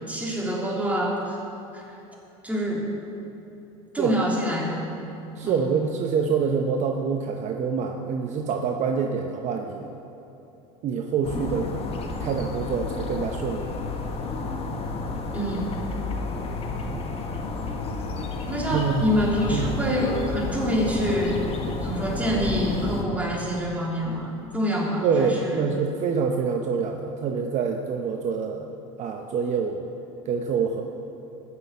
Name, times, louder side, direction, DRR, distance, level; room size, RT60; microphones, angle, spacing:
voice 1, 0.1-1.4 1.7-1.8 2.4-2.9 3.9-4.8 5.4-5.6 15.3-15.7 18.4-21.5 21.8-25.6, equal, 10° right, -3 dB, 3.1 m, -26 dB
voice 2, 5.4-9.9 10.8-11.7 12.2-13.7 16.9-17.0 18.7-19.1 19.5-19.7 25.0-28.7 29.0-29.9 30.2-30.8, right 6 dB, 45° right, 3 dB, 0.9 m, -26 dB
sound 1, 11.2-23.0, left 3 dB, 40° left, 1.5 m, -31 dB
14.0 x 6.5 x 8.1 m, 3.0 s
supercardioid pair, 100°, 16 cm